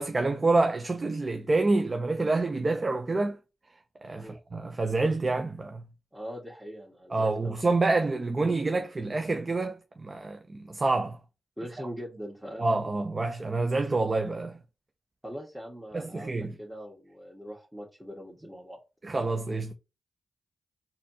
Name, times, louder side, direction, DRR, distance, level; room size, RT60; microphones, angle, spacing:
voice 1, 0.0-3.4 4.0-5.8 7.1-11.2 12.6-14.6 15.9-16.5 19.0-19.7, right 3 dB, 40° right, 0.6 m, -27 dB
voice 2, 6.1-7.5 11.6-12.6 15.2-18.8, equal, 10° right, 1.7 m, -41 dB
4.1 x 2.7 x 2.8 m
supercardioid pair, 45°, 0 cm